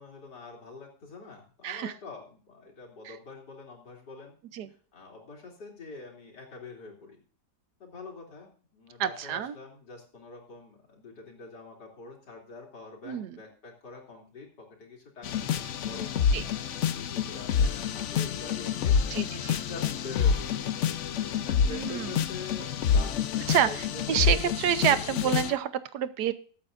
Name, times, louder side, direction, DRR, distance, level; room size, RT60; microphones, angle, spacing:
voice 1, 0.0-4.3 4.7-7.2 7.8-16.8 17.0-17.5 17.9-19.2 19.6-20.7 21.4-24.3 24.7-25.1, left 3 dB, 85° left, -1 dB, 3.6 m, -45 dB
voice 2, 9.0-9.5 13.1-13.3 16.3-16.4 19.1-19.6 21.7-22.1 23.5-23.7 24.1-26.3, right 9 dB, 75° right, 12 dB, 1.3 m, -27 dB
sound 1, 15.2-25.5, left 7 dB, 60° left, 0.8 m, -28 dB
20.5 x 8.7 x 2.6 m, 0.41 s
omnidirectional pair, 1.8 m